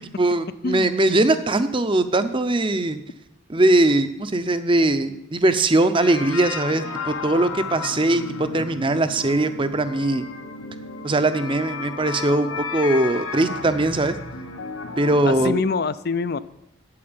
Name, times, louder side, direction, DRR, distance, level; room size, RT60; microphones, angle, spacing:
voice 1, 0.2-3.0 3.5-10.3 11.0-14.1 15.0-15.6, right 2 dB, 25° right, 11 dB, 0.6 m, -21 dB
sound 1, 5.9-15.6, left 4 dB, 80° left, 1.3 m, -33 dB
voice 2, 15.2-16.4, left 4 dB, 50° left, 16 dB, 0.5 m, -25 dB
8.7 x 7.7 x 8.9 m, 0.83 s
head